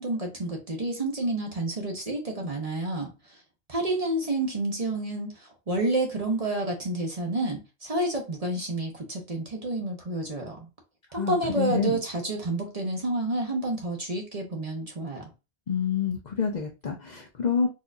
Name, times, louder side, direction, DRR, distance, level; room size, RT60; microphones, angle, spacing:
voice 1, 0.0-3.1 3.7-10.6 11.1-15.3, right 2 dB, 35° right, 0.9 m, -29 dB
voice 2, 11.1-12.0 15.7-17.7, left 6 dB, 50° left, 0.7 m, -27 dB
4.1 x 2.6 x 2.4 m
omnidirectional pair, 1.1 m